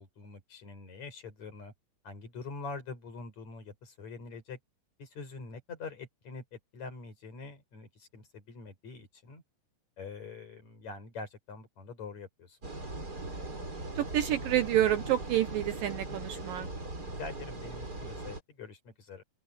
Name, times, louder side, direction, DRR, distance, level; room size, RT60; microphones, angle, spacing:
voice 1, 0.0-1.7 2.0-4.6 5.0-9.4 10.0-12.6 17.0-19.2, left 4 dB, 40° left, 6.7 m, -44 dB
sound 1, 12.6-18.4, right 2 dB, 20° right, 5.6 m, -40 dB
voice 2, 14.0-16.7, right 12 dB, 75° right, 2.2 m, -28 dB
open air
omnidirectional pair, 4.9 m